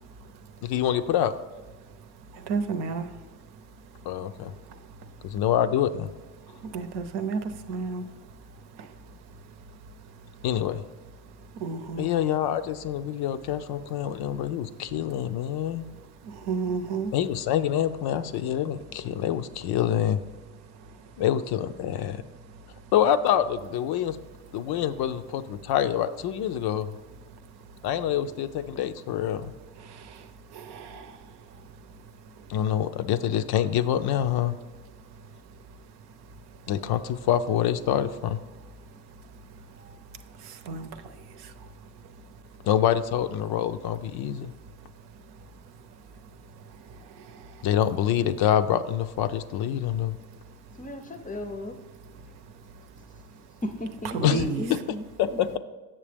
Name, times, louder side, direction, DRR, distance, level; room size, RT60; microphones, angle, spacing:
voice 1, 0.6-1.4 4.1-4.5 5.2-6.1 10.4-10.8 12.0-15.9 17.1-20.2 21.2-22.2 22.9-24.2 24.5-26.9 27.8-29.5 32.5-34.6 36.7-38.4 42.6-44.5 47.6-50.2 54.2-54.4 54.7-54.8 55.2-55.6, left 10 dB, 60° left, 11 dB, 0.5 m, -26 dB
voice 2, 2.5-3.1 6.7-7.4 7.7-8.0 11.6-12.1 16.5-17.1 30.7-31.0 40.7-40.9 54.1-54.7, right 4 dB, 65° right, 8 dB, 0.8 m, -30 dB
voice 3, 50.8-51.8 53.6-55.4, left 1 dB, 20° left, 9 dB, 0.6 m, -35 dB
7.4 x 6.7 x 3.4 m, 1.3 s
supercardioid pair, 65°, 44 cm